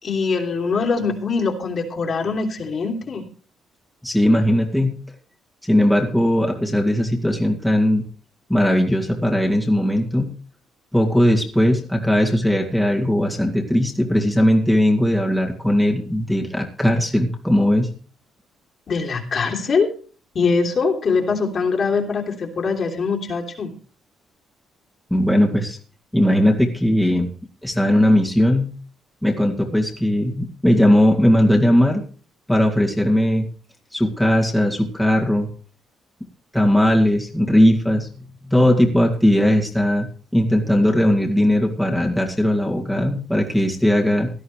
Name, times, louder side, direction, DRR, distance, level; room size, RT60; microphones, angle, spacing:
voice 1, 0.0-3.2 18.9-19.9 20.3-23.7, left 4 dB, 45° left, 2 dB, 3.2 m, -22 dB
voice 2, 4.0-5.0 5.6-8.0 8.5-10.3 10.9-17.9 25.1-25.8 26.1-27.3 27.6-28.7 29.2-32.0 32.5-33.5 33.9-35.5 36.5-40.1 40.3-44.3, equal, 5° left, -1 dB, 2.3 m, -18 dB
17.5 x 12.5 x 3.2 m, 0.40 s
cardioid pair, 125°, 0 cm